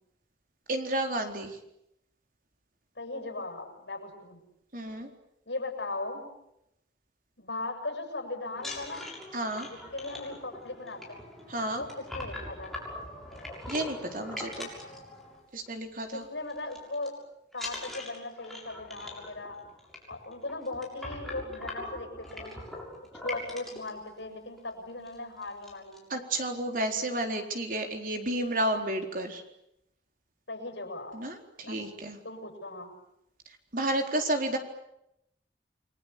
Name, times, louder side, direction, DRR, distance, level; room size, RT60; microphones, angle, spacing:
voice 1, 0.7-1.6 4.7-5.1 9.3-9.7 11.5-11.8 13.7-14.7 15.5-16.2 26.1-29.4 31.1-32.2 33.7-34.6, right 1 dB, 50° right, 4 dB, 4.2 m, -31 dB
voice 2, 3.0-4.4 5.5-6.3 7.4-9.1 9.7-11.3 11.7-12.7 16.1-17.2 17.5-19.6 20.1-22.6 23.2-26.1 30.5-31.2 31.6-31.9 32.2-32.9, left 2 dB, 80° left, 5 dB, 7.7 m, -38 dB
sound 1, 8.5-15.7 16.0-16.2 16.5-17.1 17.5-23.9 24.6-24.7 25.0-25.2 25.4-26.0, left 2 dB, ahead, 7.0 m, -42 dB
30.0 x 22.5 x 8.5 m, 0.80 s
head